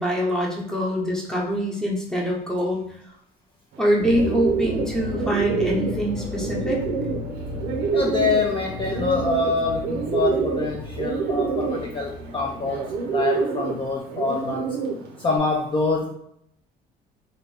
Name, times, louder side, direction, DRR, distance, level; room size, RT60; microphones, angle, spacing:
voice 1, 0.0-2.8 3.8-6.8, equal, 5° left, -3 dB, 1.0 m, -24 dB
Bird, 3.7-15.4, right 5 dB, 75° right, 0.5 m, -28 dB
sound 1, 4.0-14.0, left 2 dB, 70° left, 1.3 m, -34 dB
voice 2, 7.9-14.7 15.2-16.1, left 4 dB, 30° left, -1 dB, 0.5 m, -25 dB
2.9 x 2.6 x 3.3 m, 0.73 s
cardioid pair, 110°, 17 cm